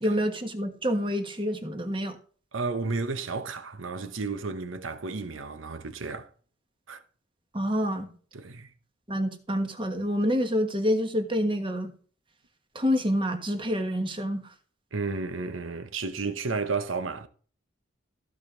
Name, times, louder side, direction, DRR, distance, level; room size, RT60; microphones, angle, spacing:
voice 1, 0.0-2.2 7.5-8.1 9.1-11.9 12.7-14.4, equal, 25° right, 1.4 m, -27 dB
voice 2, 2.5-6.3 6.9-7.0 8.3-8.7 14.9-17.3, right 4 dB, 85° right, 1.0 m, -32 dB
15.0 x 5.2 x 3.8 m
head